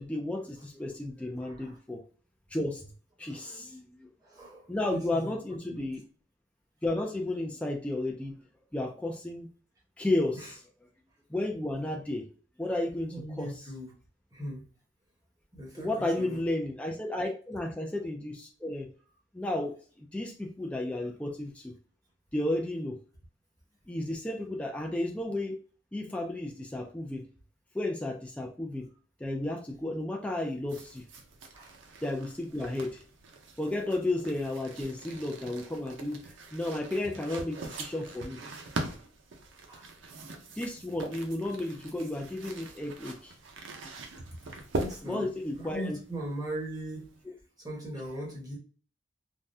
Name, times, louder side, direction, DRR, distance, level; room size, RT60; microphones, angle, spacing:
voice 1, 0.0-2.0 2.5-2.8 3.2-4.1 4.7-6.0 6.8-8.4 8.7-9.5 10.0-10.6 11.3-12.3 12.6-13.6 15.8-18.9 19.3-21.7 22.3-23.0 23.9-25.6 25.9-27.3 27.7-28.9 29.2-31.0 32.0-33.0 33.6-38.4 40.6-43.3 45.0-46.0, left 1 dB, 5° left, 0 dB, 0.4 m, -33 dB
voice 2, 1.4-1.7 3.3-3.5 4.2-5.4 5.7-5.8 10.4-10.5 13.1-13.9 14.3-14.7 15.5-16.4 31.5-31.8 39.7-39.9 44.8-45.3 45.6-47.1 47.6-48.6, right 1 dB, 20° right, -4 dB, 1.2 m, -39 dB
sound 1, 30.7-47.2, right 2 dB, 80° right, 0.6 m, -42 dB
3.5 x 2.1 x 2.6 m, 0.40 s
head